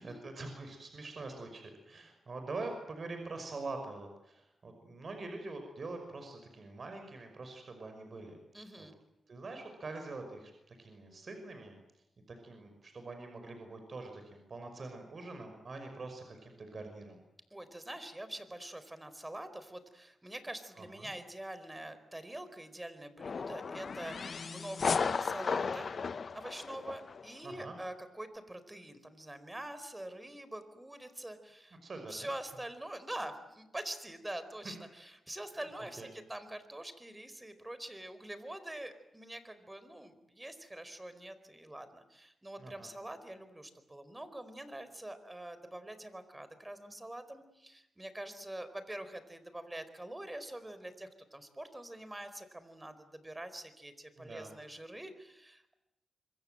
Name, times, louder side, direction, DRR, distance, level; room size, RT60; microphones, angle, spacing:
voice 1, 0.0-8.4 8.8-8.9 9.3-11.8 12.3-17.2 20.8-21.1 27.4-27.7 31.8-32.3 34.6-34.7 35.6-35.7 36.0-36.1 42.6-42.9 54.2-54.5, right 3 dB, 55° right, 5 dB, 5.6 m, -44 dB
voice 2, 8.5-8.9 17.5-25.9 26.3-31.8 32.1-55.7, right 1 dB, 15° right, 12 dB, 4.7 m, -45 dB
sound 1, 23.2-27.3, left 5 dB, 60° left, 1.0 m, -35 dB
26.0 x 23.5 x 7.9 m, 0.89 s
cardioid pair, 55°, 0 cm